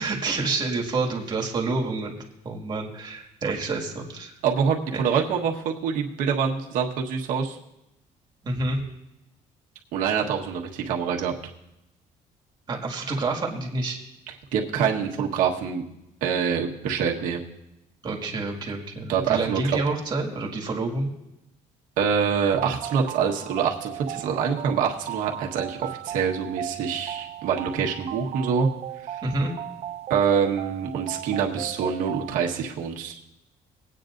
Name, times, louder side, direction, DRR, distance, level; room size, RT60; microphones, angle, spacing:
voice 1, 0.0-2.2 2.4-4.3 4.9-5.0 8.4-8.8 12.7-14.0 18.0-21.1 29.2-29.5, right 3 dB, 30° right, 0 dB, 2.1 m, -28 dB
voice 2, 4.4-7.6 9.9-11.3 14.3-15.8 16.2-17.4 19.1-19.8 22.0-28.7 29.1-29.2 30.1-33.2, right 7 dB, 80° right, 0 dB, 1.4 m, -25 dB
sound 1, 22.6-32.5, right 12 dB, 50° right, 0.4 m, -37 dB
21.0 x 9.0 x 2.6 m, 0.88 s
cardioid pair, 130°, 14 cm